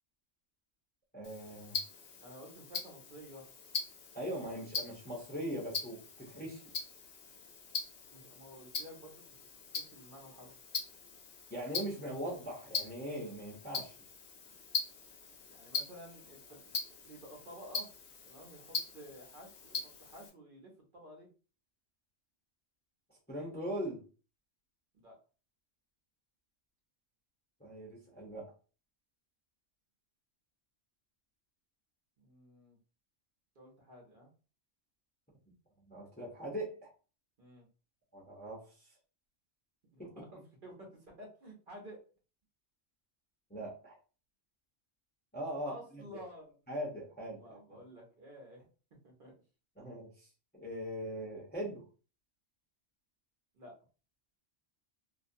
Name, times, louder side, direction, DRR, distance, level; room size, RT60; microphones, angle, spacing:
voice 1, 1.1-1.8 4.1-6.6 11.5-13.9 23.3-24.0 27.6-28.5 35.9-36.9 38.1-38.9 40.0-40.3 43.5-44.0 45.3-46.2 46.7-47.6 49.8-50.3 50.5-51.8, equal, 10° left, -5 dB, 0.5 m, -41 dB
Tick-tock, 1.2-20.3, left 5 dB, 65° left, 0.8 m, -42 dB
voice 2, 2.2-3.5 8.1-9.2 9.8-10.5 15.5-17.9 18.3-21.3 24.9-25.2 32.2-32.8 33.6-34.3 37.4-37.7 39.9-42.0 45.6-46.5 47.3-48.6 49.0-49.3 53.5-53.7, equal, 55° right, -1 dB, 0.9 m, -52 dB
2.4 x 2.1 x 2.6 m, 0.36 s
omnidirectional pair, 1.2 m